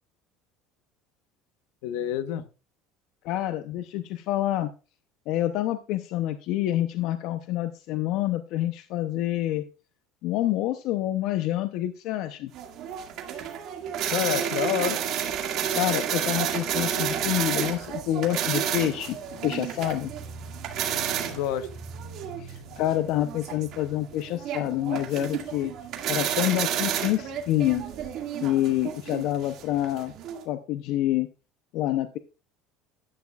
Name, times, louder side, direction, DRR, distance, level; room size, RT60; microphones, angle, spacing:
voice 1, 1.8-2.5 14.1-15.0 21.1-21.7, left 12 dB, 80° left, 1.0 m, -28 dB
voice 2, 3.2-4.7 5.3-9.6 10.2-12.5 15.8-19.2 19.4-20.1 22.4-25.7 26.1-27.8 28.4-30.1 30.5-31.3 31.7-32.2, left 14 dB, 65° left, 0.6 m, -27 dB
sound 1, 12.5-30.4, right 9 dB, 55° right, 2.0 m, -31 dB
12.0 x 9.5 x 2.4 m
supercardioid pair, 120°, 0 cm